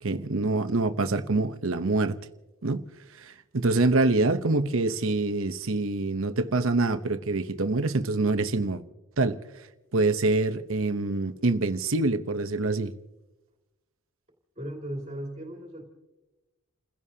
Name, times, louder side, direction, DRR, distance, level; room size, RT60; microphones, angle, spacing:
voice 1, 0.0-2.2 2.6-2.8 3.2-8.8 9.2-9.4 9.9-12.9, right 2 dB, 65° right, 0.9 m, -25 dB
voice 2, 14.6-15.8, right 1 dB, 30° right, 2.5 m, -36 dB
30.0 x 16.0 x 2.8 m
head